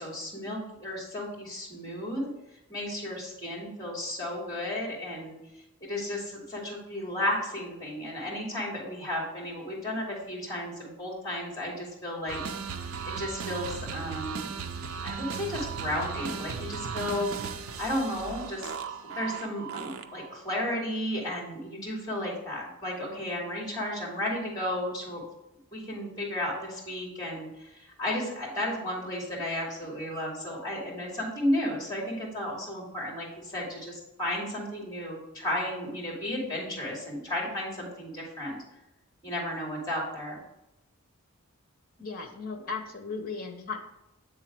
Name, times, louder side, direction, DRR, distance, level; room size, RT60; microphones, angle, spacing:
voice 1, 0.0-2.3 2.7-5.4 5.8-12.4 13.0-14.5 15.0-17.3 17.8-25.2 25.7-38.6 39.2-40.4, left 1 dB, 20° left, -3 dB, 2.6 m, -33 dB
sound 1, 12.3-20.3, right 6 dB, 70° right, 0.5 m, -36 dB
voice 2, 42.0-43.8, left 4 dB, 40° left, 4 dB, 1.0 m, -36 dB
8.4 x 3.8 x 4.6 m, 0.88 s
head